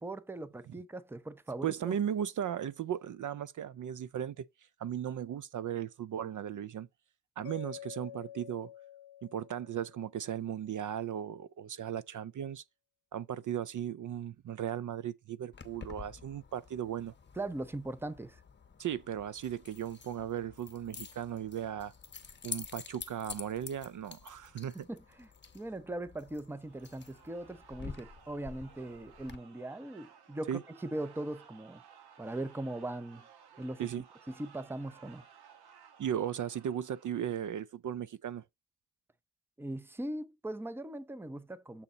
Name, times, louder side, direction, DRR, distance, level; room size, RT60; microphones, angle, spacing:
voice 1, 0.0-2.0 17.4-18.4 24.7-25.3 25.5-31.8 32.2-33.2 33.6-33.8 34.3-35.2 39.6-41.8, right 1 dB, 5° right, 0.6 m, -40 dB
voice 2, 1.6-6.9 7.4-8.7 9.2-12.6 13.1-17.1 18.8-21.9 22.4-24.7 30.5-30.6 33.8-34.0 36.0-38.4, right 9 dB, 55° right, 0.4 m, -36 dB
Mallet percussion, 7.4-10.4, left 12 dB, 75° left, 0.6 m, -49 dB
Keys jangling, 15.5-29.4, left 6 dB, 30° left, 0.9 m, -49 dB
sound 1, 26.5-37.5, right 7 dB, 90° right, 1.3 m, -58 dB
7.2 x 3.9 x 5.0 m
cardioid pair, 100°, 37 cm